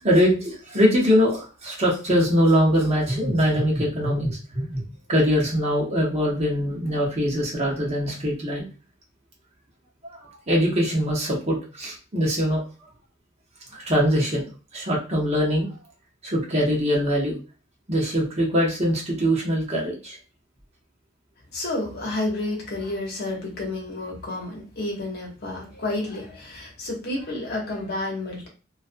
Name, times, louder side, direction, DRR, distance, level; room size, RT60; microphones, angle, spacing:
voice 1, 0.0-4.8 5.1-8.7 10.0-12.6 13.7-14.4 14.7-15.7 16.2-17.4 17.9-20.2, equal, 35° right, -3 dB, 0.8 m, -22 dB
voice 2, 21.5-28.5, left 2 dB, 50° left, -1 dB, 0.8 m, -30 dB
2.3 x 2.3 x 2.5 m, 0.33 s
head